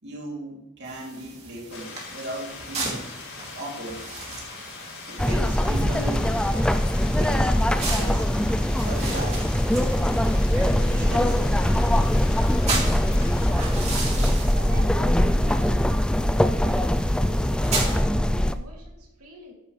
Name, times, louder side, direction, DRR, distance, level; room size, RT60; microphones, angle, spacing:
voice 1, 0.0-3.1 3.5-4.0 5.0-6.3 7.0-8.3 8.8-9.6 10.5-11.6, right 1 dB, 50° right, -2 dB, 3.0 m, -36 dB
sound 1, 0.8-18.0, right 3 dB, 30° right, 2.8 m, -36 dB
sound 2, 1.7-13.5, left 4 dB, 65° left, 4.3 m, -42 dB
sound 3, 5.2-18.5, left 1 dB, 5° left, 0.3 m, -22 dB
voice 2, 13.4-15.9 16.5-19.5, right 1 dB, 85° right, -1 dB, 2.7 m, -43 dB
14.0 x 11.0 x 3.3 m, 0.93 s
head